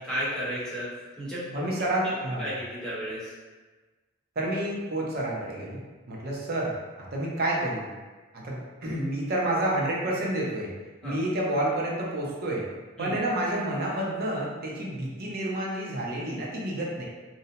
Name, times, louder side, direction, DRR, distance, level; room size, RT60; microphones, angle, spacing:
voice 1, 0.0-1.7 2.4-3.3 11.0-11.2 13.0-13.1, equal, 5° left, -10 dB, 0.9 m, -33 dB
voice 2, 1.5-2.5 4.4-5.8 6.1-7.9 8.3-10.7 11.0-12.7 13.0-17.0, right 1 dB, 50° right, -3 dB, 0.6 m, -29 dB
2.6 x 2.1 x 2.7 m, 1.3 s
head